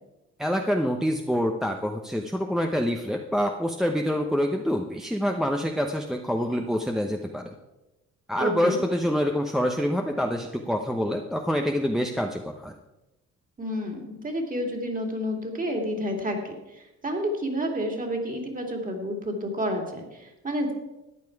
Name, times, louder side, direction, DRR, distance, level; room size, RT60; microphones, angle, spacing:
voice 1, 0.4-7.5 8.3-12.7, equal, ahead, 2 dB, 0.8 m, -26 dB
voice 2, 8.4-8.8 13.6-20.7, equal, 25° right, 3 dB, 2.7 m, -30 dB
14.0 x 9.2 x 4.7 m, 1.0 s
cardioid pair, 90°, 30 cm